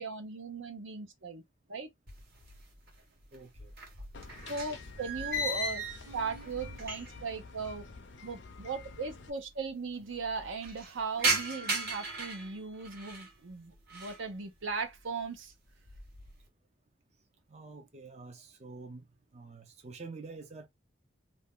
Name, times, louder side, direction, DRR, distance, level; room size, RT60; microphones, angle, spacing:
voice 1, 0.0-1.4 1.7-1.9 4.5-5.8 6.1-7.8 8.2-15.5, right 4 dB, 75° right, 0.7 m, -38 dB
Opening-and-closing-wildlife-fence-Texel, 2.1-2.9 3.2-7.3 7.6-7.7 8.6-8.7 8.8-8.9 9.2-9.7 10.1-13.3 13.7-14.3 14.7-15.1 15.5-16.4, right 2 dB, 50° right, 1.1 m, -36 dB
voice 2, 3.3-3.7 17.5-20.7, right 3 dB, 35° right, 0.5 m, -47 dB
sound 1, 4.1-9.3, left 4 dB, 60° left, 0.6 m, -49 dB
2.6 x 2.3 x 3.5 m
head